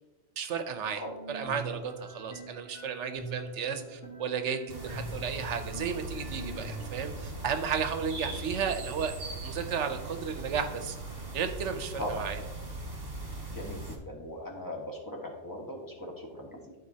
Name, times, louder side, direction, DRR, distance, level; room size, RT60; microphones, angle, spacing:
voice 1, 0.4-1.0 1.3-9.1 9.4-11.0 11.3-12.4, right 6 dB, 75° right, 7 dB, 1.0 m, -33 dB
sound 1, 0.7-7.2, right 2 dB, 75° left, 2.2 m, -43 dB
sound 2, 4.7-14.0, right 2 dB, 35° right, 1.6 m, -40 dB
voice 2, 13.5-16.7, equal, 15° left, -1 dB, 1.3 m, -39 dB
12.5 x 4.4 x 2.8 m, 1.2 s
omnidirectional pair, 1.2 m